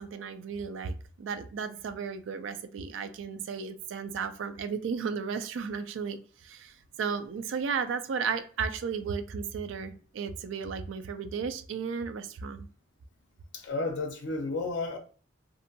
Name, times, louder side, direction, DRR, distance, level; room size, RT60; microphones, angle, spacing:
voice 1, 0.0-12.7, right 6 dB, 70° right, 0.3 m, -34 dB
voice 2, 13.5-15.0, left 3 dB, 60° left, 0.5 m, -32 dB
2.6 x 2.2 x 2.6 m
head